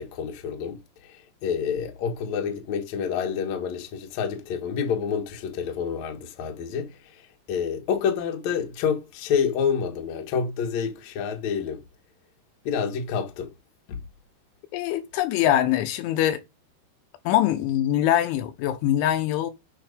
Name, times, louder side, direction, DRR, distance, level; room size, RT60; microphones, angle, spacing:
voice 1, 0.0-11.8 12.6-13.5 13.9-14.0, left 7 dB, 60° left, 1.9 m, -28 dB
voice 2, 14.7-16.4 17.3-19.5, left 12 dB, 80° left, 3.4 m, -23 dB
9.1 x 5.5 x 5.2 m
omnidirectional pair, 5.5 m